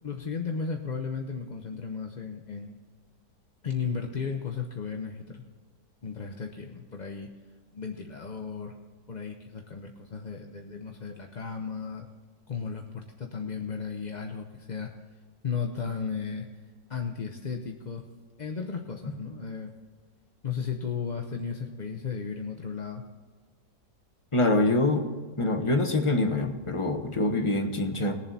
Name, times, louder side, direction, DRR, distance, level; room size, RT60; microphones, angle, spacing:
voice 1, 0.0-2.8 3.6-5.4 6.0-7.3 7.7-8.7 9.1-12.1 12.5-14.9 15.4-16.5 16.9-18.1 18.4-19.7 20.4-23.0, left 6 dB, 45° left, 3 dB, 0.6 m, -35 dB
voice 2, 24.3-25.1 25.4-28.1, left 2 dB, 20° left, 3 dB, 1.1 m, -25 dB
20.0 x 7.3 x 4.1 m, 1.5 s
omnidirectional pair, 1.8 m